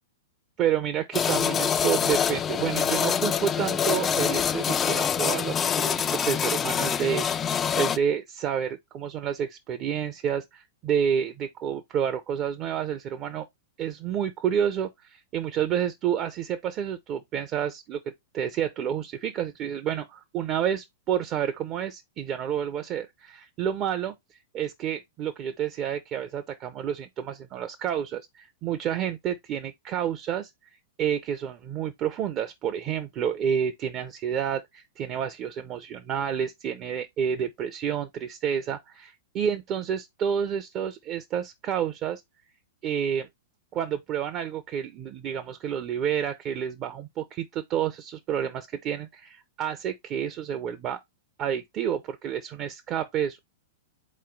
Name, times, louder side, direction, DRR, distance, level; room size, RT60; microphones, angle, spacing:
voice 1, 0.6-13.5 13.8-18.0 18.3-24.1 24.5-30.5 31.0-42.2 42.8-43.3 43.7-51.0 51.4-53.4, right 8 dB, 35° right, 0.6 m, -29 dB
sound 1, 1.1-8.0, left 8 dB, 25° left, 0.3 m, -25 dB
4.2 x 3.1 x 3.8 m
hypercardioid pair, 105°, 0 cm